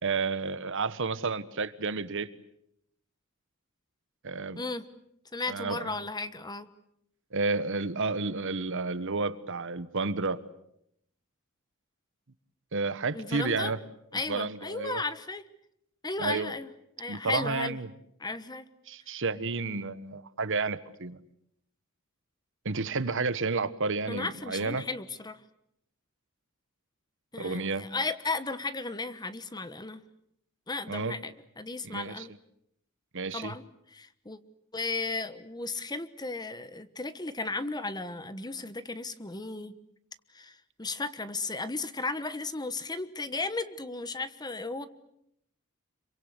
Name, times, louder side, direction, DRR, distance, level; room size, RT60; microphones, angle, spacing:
voice 1, 0.0-2.3 4.2-4.6 5.5-6.0 7.3-10.4 12.7-13.8 14.3-15.0 16.2-16.5 17.1-17.9 18.9-21.2 22.6-24.8 27.4-27.9 30.9-31.2 31.8-32.3 33.1-33.5, right 4 dB, 60° right, 15 dB, 1.2 m, -31 dB
voice 2, 5.3-6.7 13.1-13.7 14.1-15.4 16.0-16.7 17.0-17.8 18.2-18.7 24.1-25.4 27.3-30.0 30.7-32.3 33.3-33.6 33.9-34.4 34.7-39.7 40.3-44.9, left 3 dB, 20° left, 13 dB, 1.2 m, -35 dB
27.0 x 24.0 x 8.2 m, 0.75 s
head